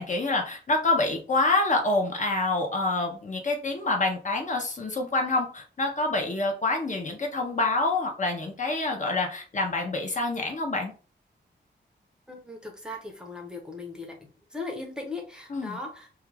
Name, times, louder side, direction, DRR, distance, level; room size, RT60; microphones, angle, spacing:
voice 1, 0.0-10.9 15.5-15.8, left 2 dB, 40° left, 2 dB, 0.5 m, -27 dB
voice 2, 12.3-14.2 14.5-16.1, left 2 dB, 5° right, 0 dB, 0.5 m, -38 dB
2.3 x 2.2 x 3.2 m, 0.36 s
wide cardioid pair, 160°, 19 cm